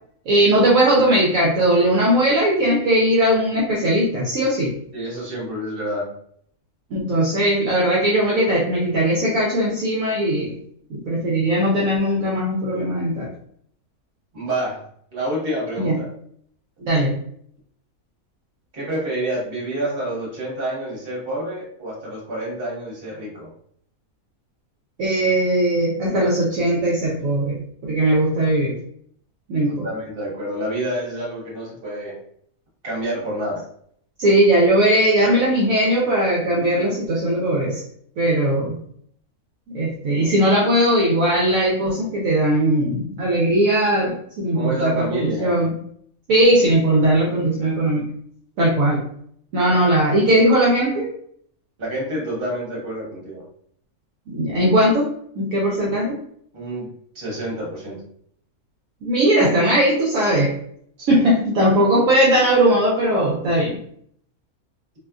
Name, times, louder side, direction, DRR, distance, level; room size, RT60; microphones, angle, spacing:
voice 1, 0.3-4.8 6.9-10.5 10.9-13.3 15.8-16.0 16.8-17.1 25.0-28.7 29.5-29.9 34.2-37.8 38.2-38.8 39.7-45.8 46.3-48.1 48.6-49.0 49.5-51.1 54.3-56.2 59.0-60.6 61.1-63.8, right 1 dB, 70° right, -4 dB, 1.0 m, -19 dB
voice 2, 4.9-6.1 14.3-14.8 15.1-16.1 18.7-23.5 29.8-32.2 32.8-33.6 44.5-45.5 51.8-53.4 56.5-58.0 61.0-61.2, right 1 dB, 40° right, -4 dB, 1.2 m, -28 dB
2.7 x 2.4 x 2.2 m, 0.64 s
omnidirectional pair, 1.6 m